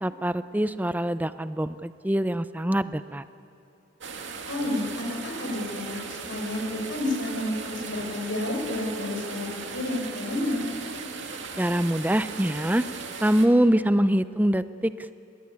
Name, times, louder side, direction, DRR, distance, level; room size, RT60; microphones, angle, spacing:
voice 1, 0.0-3.2 11.6-12.8 13.2-15.1, right 1 dB, 10° right, 13 dB, 0.5 m, -24 dB
sound 1, 4.0-13.5, right 4 dB, 70° right, 2.3 m, -38 dB
voice 2, 4.5-9.5 9.7-10.6, left 1 dB, 80° left, 1 dB, 5.6 m, -30 dB
25.0 x 20.0 x 9.8 m, 2.7 s
head